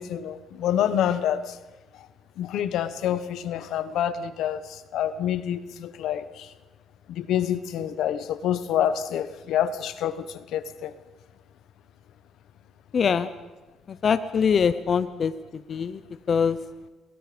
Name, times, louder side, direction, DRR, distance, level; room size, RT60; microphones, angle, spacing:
voice 1, 0.0-1.6 2.4-6.5 7.1-10.9, left 10 dB, 80° left, 13 dB, 1.2 m, -27 dB
voice 2, 12.9-13.3 14.0-15.3 15.7-16.0 16.3-16.6, left 6 dB, 50° left, 13 dB, 0.9 m, -22 dB
28.0 x 21.5 x 5.2 m, 1.2 s
cardioid pair, 90°, 0 cm